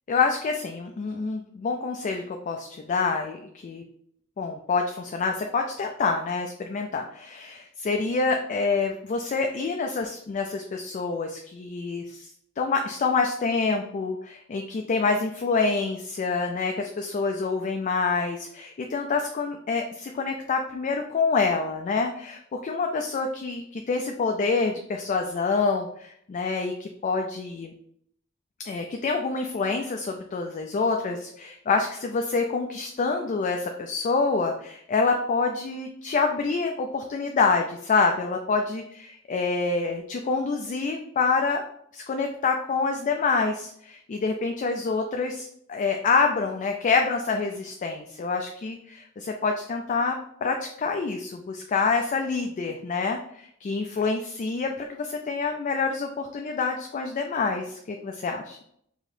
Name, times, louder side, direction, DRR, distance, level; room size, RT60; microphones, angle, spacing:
voice 1, 0.1-3.8 4.4-12.3 12.6-27.7 28.7-41.6 41.9-58.6, left 4 dB, 40° left, 4 dB, 0.3 m, -27 dB
4.8 x 2.8 x 2.6 m, 0.69 s
head